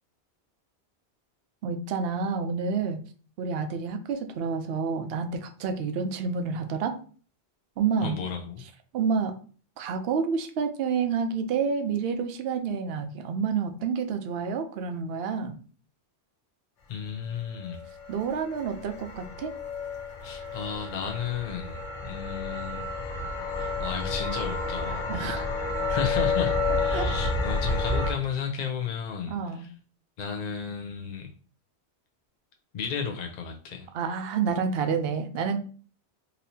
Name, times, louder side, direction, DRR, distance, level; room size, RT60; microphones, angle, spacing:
voice 1, 1.6-3.0 3.4-7.0 7.8-8.2 8.9-9.3 9.8-15.6 18.1-19.5 25.1-25.5 26.9-27.1 29.3-29.7 33.9-35.6, right 5 dB, 65° right, 7 dB, 0.8 m, -29 dB
voice 2, 8.0-8.6 16.9-17.8 20.2-22.9 23.6-25.1 25.9-29.7 30.2-31.3 32.7-33.9, left 7 dB, 55° left, 2 dB, 0.5 m, -33 dB
sound 1, 17.6-28.1, left 3 dB, 90° left, 1.1 m, -30 dB
4.1 x 2.7 x 2.7 m, 0.41 s
omnidirectional pair, 1.2 m